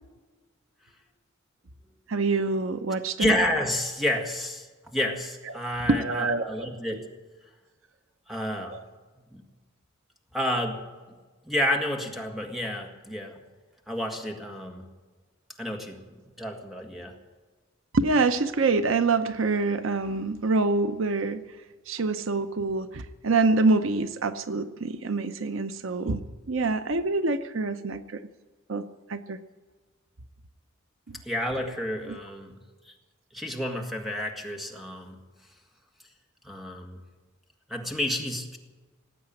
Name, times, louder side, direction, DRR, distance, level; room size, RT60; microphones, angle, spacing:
voice 1, 2.1-3.4 5.5-7.1 8.7-8.8 17.9-21.4 21.9-28.2 28.7-28.8 29.1-29.4 31.1-31.2 32.1-32.2, right 3 dB, 70° right, 11 dB, 0.7 m, -26 dB
voice 2, 3.2-4.7 4.9-7.0 8.3-8.8 9.3-9.4 10.3-10.8 11.5-13.4 13.9-14.9 15.6-16.1 16.4-17.2 31.2-32.6 32.9-33.0 33.3-35.2 36.4-37.0 37.7-38.6, left 1 dB, ahead, 3 dB, 1.7 m, -30 dB
18.5 x 8.7 x 8.8 m, 1.4 s
head